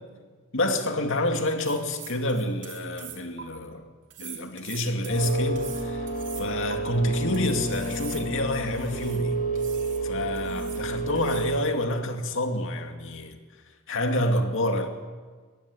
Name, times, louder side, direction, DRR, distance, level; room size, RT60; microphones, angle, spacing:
voice 1, 0.5-3.8 4.2-6.1 6.4-9.4 10.0-13.4 13.9-14.9, left 1 dB, 60° left, 2.4 m, -28 dB
sound 1, 1.4-3.4 4.1-6.8 7.3-9.2 9.6-10.0 10.4-10.9 11.1-11.6, right 10 dB, 55° right, 3.1 m, -43 dB
sound 2, 5.1-11.6, right 2 dB, 35° left, 5.6 m, -31 dB
21.5 x 16.5 x 10.0 m
head